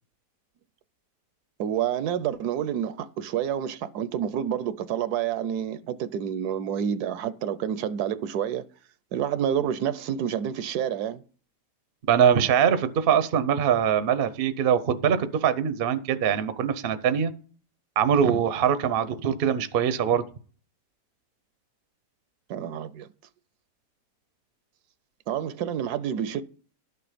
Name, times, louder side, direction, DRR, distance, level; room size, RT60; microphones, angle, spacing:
voice 1, 1.6-8.6 9.1-11.2 22.5-23.1 25.3-26.4, right 9 dB, 75° right, 1.1 m, -28 dB
voice 2, 12.1-17.3 18.0-20.2, right 8 dB, 50° right, 0.7 m, -23 dB
12.0 x 6.9 x 5.0 m
omnidirectional pair, 1.8 m